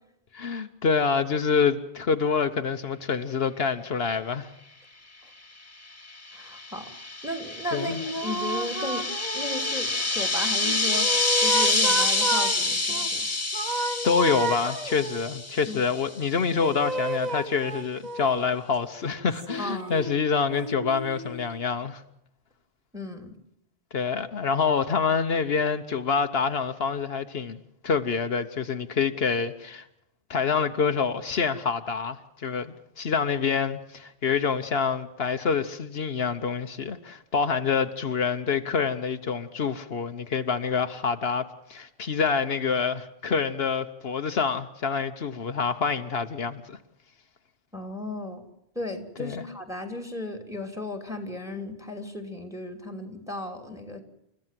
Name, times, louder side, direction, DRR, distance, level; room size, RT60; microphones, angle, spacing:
voice 1, 0.3-4.5 7.7-8.0 14.0-22.0 23.9-29.8 30.3-46.8 49.2-49.4, left 5 dB, 70° left, 1.2 m, -26 dB
sound 1, 6.1-15.9, left 2 dB, 15° left, 2.2 m, -27 dB
voice 2, 6.3-6.9 7.2-9.1 9.3-13.3 15.7-15.8 19.6-19.9 22.9-23.3 47.7-48.4 48.7-54.0, left 2 dB, 5° right, 3.0 m, -35 dB
sound 2, 7.8-10.0 10.6-13.1 13.5-15.4 16.6-18.5 19.3-21.6, right 2 dB, 40° right, 1.7 m, -32 dB
29.5 x 14.5 x 7.5 m
omnidirectional pair, 1.1 m